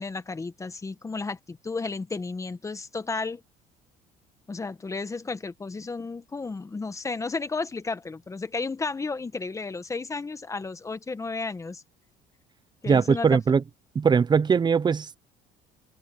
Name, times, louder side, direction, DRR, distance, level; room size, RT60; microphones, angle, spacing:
voice 1, 0.0-3.4 4.5-11.8 12.8-13.4, left 4 dB, 20° left, 1.3 m, -33 dB
voice 2, 12.9-13.6 13.9-15.2, right 6 dB, 25° right, 0.8 m, -21 dB
cardioid pair, 115°, 17 cm